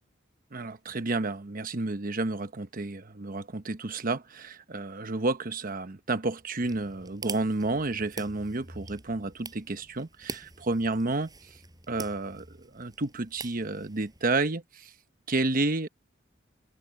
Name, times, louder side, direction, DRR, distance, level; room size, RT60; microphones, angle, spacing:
voice 1, 0.5-11.3 11.9-14.9 15.3-15.9, right 2 dB, 45° right, 1.0 m, -31 dB
sound 1, 6.6-14.4, right 4 dB, 20° right, 5.8 m, -45 dB
open air
head